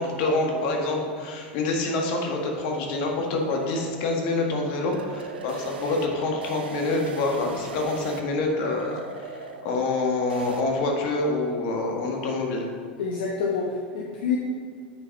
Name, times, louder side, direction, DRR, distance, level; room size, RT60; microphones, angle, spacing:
voice 1, 0.0-9.0 9.3-12.6, left 2 dB, 60° left, 1 dB, 1.7 m, -26 dB
sound 1, 1.7-10.6, right 4 dB, 90° right, 0.7 m, -41 dB
voice 2, 13.0-14.4, left 5 dB, 80° left, -1 dB, 1.0 m, -27 dB
8.2 x 5.1 x 5.4 m, 2.2 s
hypercardioid pair, 100°, 5 cm